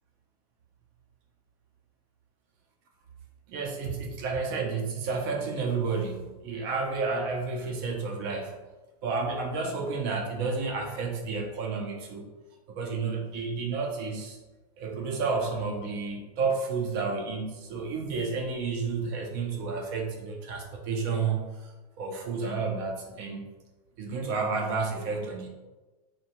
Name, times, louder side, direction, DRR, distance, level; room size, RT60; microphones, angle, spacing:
voice 1, 3.5-8.5 9.0-12.3 12.7-14.4 14.8-23.4 24.0-25.5, right 4 dB, 35° right, 2 dB, 0.4 m, -31 dB
2.6 x 2.1 x 2.8 m, 1.2 s
supercardioid pair, 170°, 20 cm